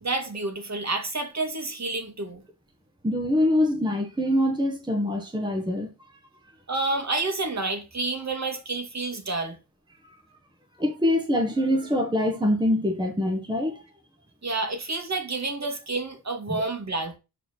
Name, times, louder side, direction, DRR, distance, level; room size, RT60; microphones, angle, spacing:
voice 1, 0.0-2.4 6.7-9.6 14.4-17.2, right 3 dB, 45° right, 2.3 m, -29 dB
voice 2, 3.0-5.9 10.8-13.8 16.5-16.6, left 1 dB, 10° right, 1.5 m, -24 dB
6.5 x 5.0 x 6.4 m
wide cardioid pair, 115°, 39 cm